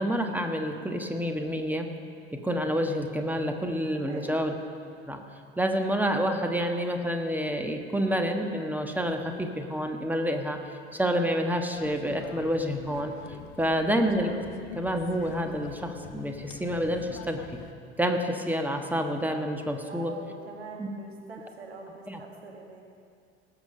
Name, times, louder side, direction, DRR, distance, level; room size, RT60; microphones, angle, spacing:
voice 1, 0.0-1.9 2.3-4.5 5.1-5.2 5.6-10.6 10.9-13.1 13.6-14.3 14.7-17.4 18.0-20.1 20.8-20.9 22.1-22.2, equal, 5° right, 4 dB, 1.3 m, -28 dB
sound 1, 11.7-17.7, left 10 dB, 60° left, 0.7 m, -45 dB
voice 2, 13.7-14.0 19.9-22.8, right 4 dB, 85° right, 0 dB, 1.7 m, -44 dB
19.0 x 7.0 x 5.4 m, 2.3 s
figure-of-eight pair, 60°, 31 cm